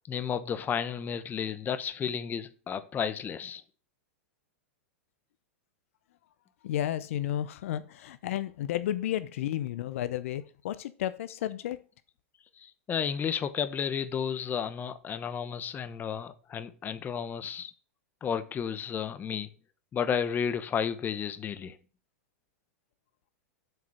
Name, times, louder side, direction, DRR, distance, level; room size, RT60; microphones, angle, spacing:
voice 1, 0.1-3.6 12.6-17.7 18.2-19.5 19.9-21.8, left 7 dB, 25° left, 1.0 m, -32 dB
voice 2, 6.6-11.9, left 12 dB, 70° left, 0.7 m, -32 dB
7.8 x 5.0 x 7.1 m
hypercardioid pair, 115°, 8 cm